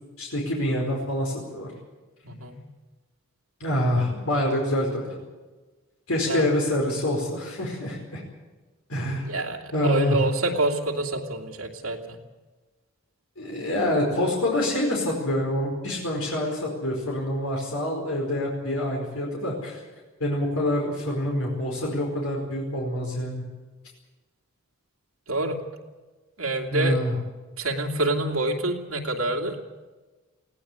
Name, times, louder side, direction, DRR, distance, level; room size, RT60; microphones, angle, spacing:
voice 1, 0.2-1.7 3.6-5.1 6.1-8.2 8.9-9.3 9.7-10.2 13.4-19.8 20.2-23.4 26.7-27.2, left 1 dB, 85° left, -1 dB, 4.9 m, -26 dB
voice 2, 2.2-2.6 6.3-6.5 9.3-12.2 25.3-25.6 26.4-27.0 27.6-29.6, right 2 dB, 85° right, 1 dB, 2.7 m, -27 dB
19.5 x 17.0 x 8.2 m, 1.2 s
head